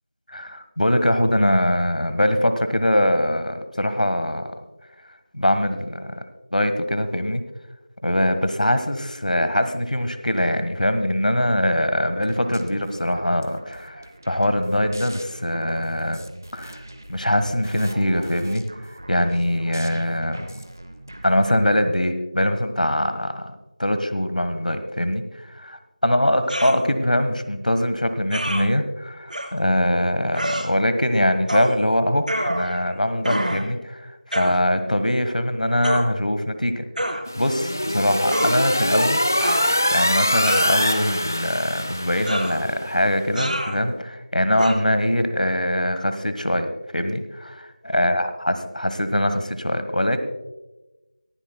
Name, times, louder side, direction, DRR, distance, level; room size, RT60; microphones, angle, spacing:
voice 1, 0.3-4.5 5.3-6.2 6.5-7.4 8.0-16.2 16.5-16.8 17.1-18.6 19.1-20.5 21.2-34.0 34.3-39.2 39.9-46.7 46.9-50.2, left 1 dB, 80° left, 9 dB, 1.5 m, -22 dB
sound 1, 12.2-21.8, right 1 dB, 25° right, 0.7 m, -42 dB
sound 2, 26.5-26.8 28.3-28.6 29.3-29.5 30.3-30.7 31.5-31.8 32.3-32.9 33.2-33.7 34.3-34.6 35.8-36.0 37.0-37.2 38.3-38.6 39.4-39.9 40.5-41.1 42.3-42.6 43.4-43.8 44.6-44.7, equal, 90° right, 4.4 m, -27 dB
sound 3, 37.3-42.8, left 1 dB, 25° left, 0.4 m, -23 dB
24.0 x 12.0 x 2.3 m, 1.1 s
figure-of-eight pair, 175°, 4 cm